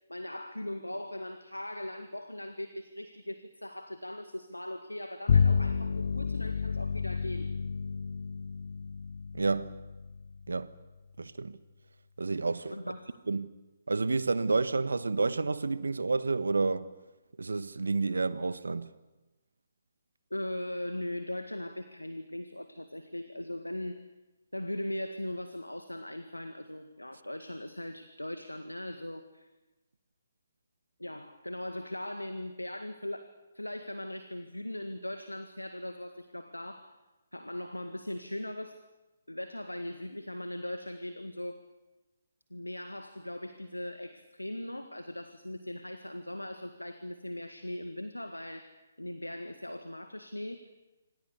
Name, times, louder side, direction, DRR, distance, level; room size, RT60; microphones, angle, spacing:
voice 1, 0.1-7.5 12.7-13.1 20.3-24.0 24.5-29.5 31.0-33.3 33.5-37.0 37.3-38.8 39.3-41.6 42.5-48.7 49.0-50.7, left 1 dB, 85° left, 1.9 m, -39 dB
Bowed string instrument, 5.3-10.9, left 6 dB, 50° left, 1.1 m, -30 dB
voice 2, 9.3-9.7 10.5-10.7 11.2-11.6 12.2-12.7 13.3-13.5 13.9-16.9 17.4-18.9, right 3 dB, 65° right, 1.4 m, -29 dB
27.5 x 26.0 x 6.8 m
figure-of-eight pair, 135°, 0 cm